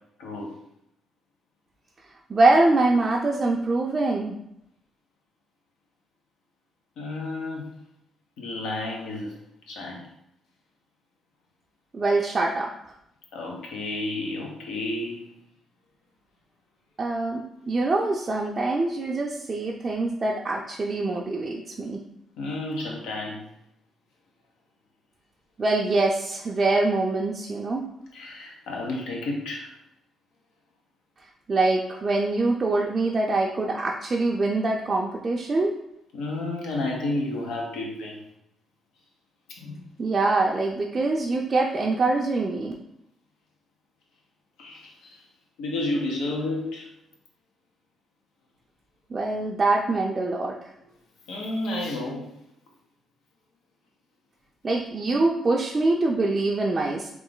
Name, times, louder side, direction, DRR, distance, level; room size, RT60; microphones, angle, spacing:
voice 1, 0.2-0.6 7.0-7.7 8.4-9.4 9.7-10.0 13.3-15.3 22.4-23.4 28.1-29.7 36.1-38.2 39.6-39.8 44.6-45.2 45.6-46.9 51.3-52.3, left 2 dB, 85° left, -1 dB, 0.9 m, -31 dB
voice 2, 2.3-4.4 11.9-12.7 17.0-22.0 25.6-27.8 31.5-35.7 40.0-42.7 49.1-50.6 54.6-57.1, right 2 dB, 35° right, -2 dB, 0.4 m, -24 dB
3.1 x 2.5 x 3.7 m, 0.79 s
cardioid pair, 90°, 0 cm